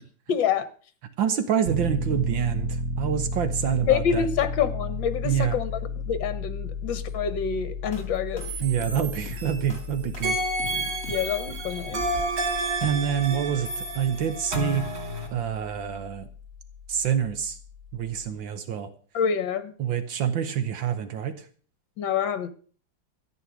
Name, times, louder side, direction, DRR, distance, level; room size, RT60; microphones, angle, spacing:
voice 1, 0.3-0.7 3.8-5.7 6.1-8.5 11.1-12.0 19.1-19.7 22.0-22.5, left 8 dB, 70° left, 13 dB, 1.9 m, -26 dB
voice 2, 1.2-4.3 5.2-5.6 8.6-10.4 12.8-14.9 15.3-16.3 16.9-17.6 17.9-18.9 19.8-21.5, right 9 dB, 75° right, 10 dB, 1.7 m, -27 dB
Piano, 1.7-18.3, left 2 dB, 50° right, 2.0 m, -34 dB
sound 1, 7.9-12.9, left 2 dB, 45° left, 3.7 m, -40 dB
sound 2, 8.4-9.8 10.2-15.3, right 2 dB, 90° right, 4.0 m, -30 dB
14.0 x 9.7 x 6.2 m, 0.44 s
omnidirectional pair, 2.2 m